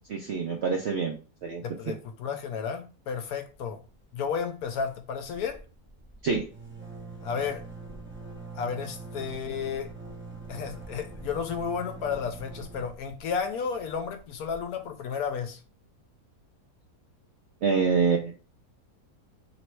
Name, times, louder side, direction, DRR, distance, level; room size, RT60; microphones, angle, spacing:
voice 1, 0.1-1.6 6.2-6.4 17.6-18.3, right 5 dB, 65° right, 0.6 m, -26 dB
voice 2, 1.6-3.8 4.1-5.6 7.2-7.6 8.5-9.9 10.5-15.6, left 6 dB, 70° left, 1.0 m, -32 dB
sound 1, 3.5-4.0 4.2-4.4 4.6-15.3, right 3 dB, 15° right, 0.5 m, -44 dB
3.1 x 3.0 x 4.4 m
omnidirectional pair, 1.7 m